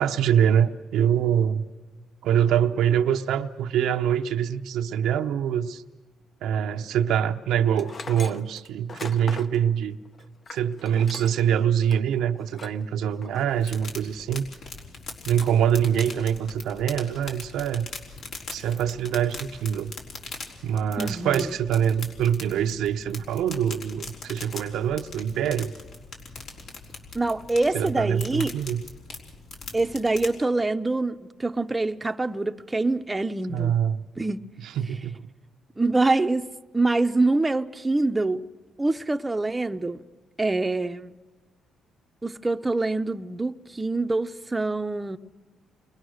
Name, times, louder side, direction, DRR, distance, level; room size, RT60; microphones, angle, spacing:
voice 1, 0.0-1.6 2.2-5.8 6.4-10.0 10.5-14.4 15.2-17.9 18.5-19.9 20.6-25.7 27.7-28.8 33.5-34.0 34.6-35.3, right 9 dB, 85° right, 0.8 m, -24 dB
Tools, 7.8-11.5 11.9-12.0 12.5-12.8 13.2-13.9, left 4 dB, 40° left, 0.9 m, -40 dB
sound 1, 13.5-30.3, left 4 dB, 70° left, 4.2 m, -41 dB
voice 2, 21.0-21.5 27.1-28.5 29.7-33.7 34.2-34.5 35.8-36.5 36.7-38.4 38.8-40.0 40.4-41.1 42.2-45.2, right 2 dB, 15° right, 0.7 m, -25 dB
29.0 x 22.0 x 6.5 m
cardioid pair, 90°, 0 cm